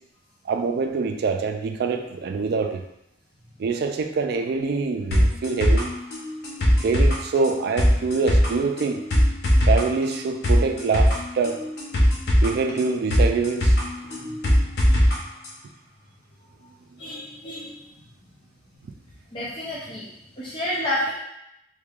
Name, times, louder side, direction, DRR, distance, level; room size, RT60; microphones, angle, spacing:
voice 1, 0.5-2.8 3.6-5.9 6.7-9.0 9.7-11.6 12.4-13.8 14.1-14.4 18.8-18.9, right 4 dB, 60° right, 6 dB, 0.3 m, -25 dB
sound 1, 5.1-15.2 15.4-15.5, equal, 65° left, 0.8 m, -20 dB
voice 2, 17.0-17.9 19.3-20.0 20.3-21.1, left 1 dB, 30° left, -8 dB, 0.6 m, -30 dB
3.3 x 3.2 x 2.3 m, 0.83 s
head